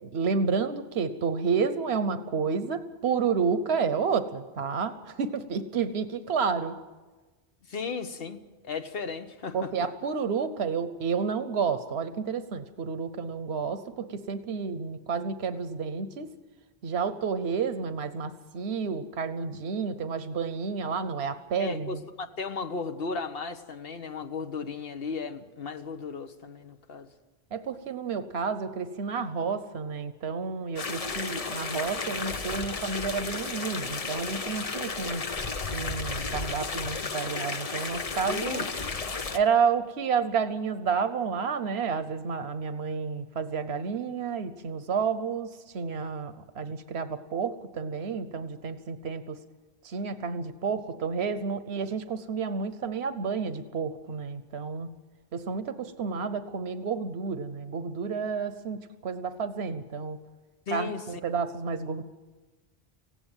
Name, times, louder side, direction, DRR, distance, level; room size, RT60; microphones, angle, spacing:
voice 1, 0.0-6.8 9.5-16.3 16.8-22.0 27.5-35.2 35.7-38.6 39.3-49.4 49.8-54.9 55.3-60.2 60.7-62.0, right 5 dB, 90° right, 11 dB, 1.1 m, -30 dB
voice 2, 7.7-8.4 8.6-9.9 21.6-27.1 38.3-39.0 60.7-61.0, left 4 dB, 65° left, 8 dB, 1.3 m, -35 dB
sound 1, 30.8-39.4, left 4 dB, 40° left, 0.9 m, -33 dB
18.5 x 16.0 x 9.0 m, 1.2 s
omnidirectional pair, 1.0 m